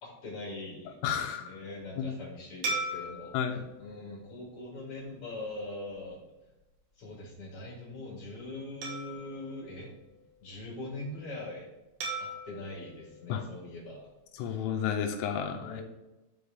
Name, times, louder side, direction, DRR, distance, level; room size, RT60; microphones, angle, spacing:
voice 1, 0.0-6.2 7.0-9.9 10.4-11.7 12.2-14.0 15.6-15.8, left 2 dB, 60° left, -4 dB, 1.4 m, -42 dB
voice 2, 1.0-1.6 2.0-2.2 3.3-3.6 13.3-13.4 14.4-15.8, left 8 dB, 85° left, 3 dB, 3.2 m, -32 dB
sound 1, 2.6-5.3 5.9-6.1 8.8-10.6 12.0-14.3, right 2 dB, 65° right, 3.6 m, -40 dB
13.0 x 4.3 x 3.6 m, 1.0 s
omnidirectional pair, 5.9 m